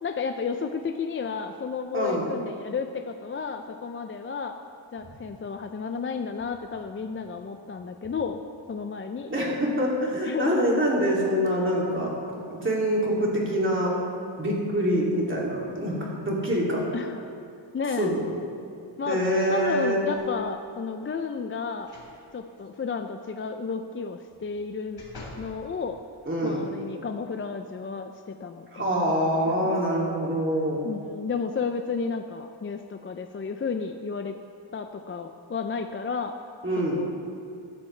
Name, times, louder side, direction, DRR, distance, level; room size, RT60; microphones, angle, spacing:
voice 1, 0.0-4.6 4.9-8.4 8.7-9.3 10.2-10.6 16.9-17.3 17.7-18.1 19.0-19.2 19.5-21.9 22.3-25.0 25.4-26.0 26.4-29.7 30.8-34.4 34.7-36.3 36.9-37.1, left 5 dB, 30° left, 6 dB, 0.4 m, -32 dB
voice 2, 9.3-12.1 12.5-13.9 14.4-16.9 18.0-18.3 19.1-20.0 26.3-26.6 28.7-30.9 36.6-37.0, equal, 25° right, -4 dB, 2.7 m, -25 dB
sound 1, 20.1-20.7 21.8-22.2 22.6-22.7 24.3-25.5 26.1-26.2, left 2 dB, 55° left, 3.2 m, -46 dB
15.0 x 13.0 x 3.3 m, 2.4 s
wide cardioid pair, 130°, 46 cm